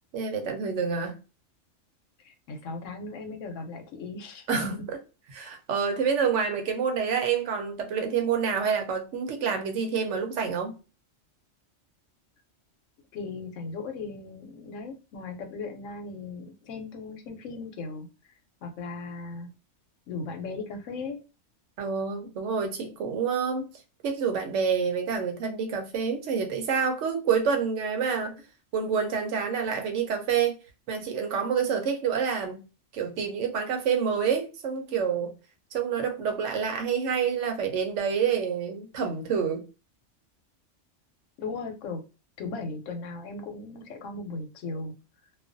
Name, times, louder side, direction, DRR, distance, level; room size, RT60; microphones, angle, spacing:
voice 1, 0.1-1.2 4.5-4.7 5.3-10.7 21.8-23.7 24.0-28.4 28.7-30.6 30.9-32.6 32.9-35.3 35.7-39.7, right 6 dB, 75° right, 0.9 m, -27 dB
voice 2, 2.2-4.7 13.1-18.1 18.6-19.5 20.1-21.2 41.4-42.0 42.4-44.9, left 3 dB, 85° left, 1.0 m, -37 dB
2.3 x 2.3 x 2.5 m
omnidirectional pair, 1.3 m